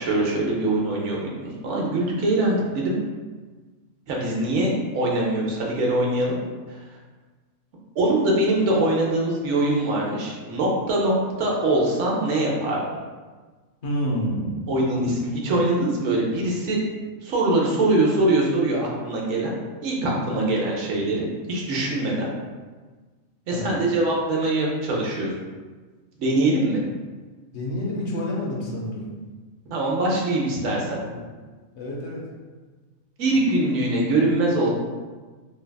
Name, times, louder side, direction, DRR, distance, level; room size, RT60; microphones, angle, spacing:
voice 1, 0.0-3.0 4.1-6.4 8.0-11.1 11.4-12.8 14.7-16.8 17.2-19.5 19.8-22.3 23.5-25.3 26.2-26.8 29.7-31.0 33.2-34.7, right 2 dB, 65° right, -3 dB, 0.9 m, -23 dB
voice 2, 13.8-14.6 20.3-20.4 23.5-23.8 27.5-29.1 30.6-30.8 31.7-32.3, equal, 60° left, -4 dB, 0.9 m, -28 dB
3.3 x 2.2 x 2.2 m, 1.4 s
omnidirectional pair, 1.4 m